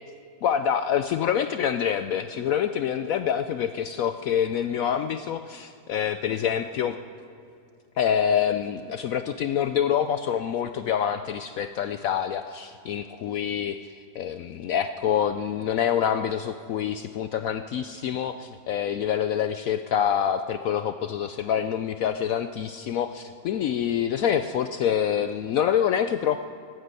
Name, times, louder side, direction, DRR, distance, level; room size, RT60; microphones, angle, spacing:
voice 1, 0.4-7.0 8.0-26.4, left 9 dB, 70° left, 10 dB, 0.8 m, -26 dB
18.5 x 9.5 x 8.2 m, 2.5 s
omnidirectional pair, 1.8 m